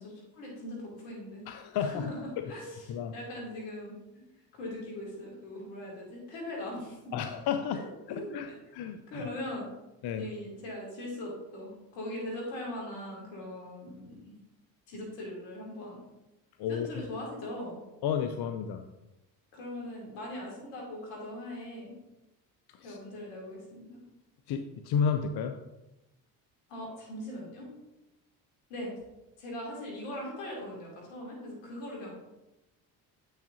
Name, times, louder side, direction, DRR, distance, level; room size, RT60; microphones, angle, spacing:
voice 1, 0.0-1.5 1.7-2.9 3.1-7.1 7.7-8.5 9.1-9.7 10.2-14.2 14.9-16.0 16.7-17.8 19.5-21.9 22.8-24.0 26.7-27.7 28.7-28.9 29.4-32.1, left 1 dB, 80° left, -2 dB, 2.5 m, -40 dB
voice 2, 1.5-2.1 2.9-3.1 7.1-9.3 10.0-10.2 16.6-17.1 18.0-18.8 22.8-23.0 24.5-25.6, left 7 dB, 55° left, 8 dB, 0.6 m, -32 dB
8.2 x 6.3 x 2.7 m, 0.96 s
hypercardioid pair, 60°, 48 cm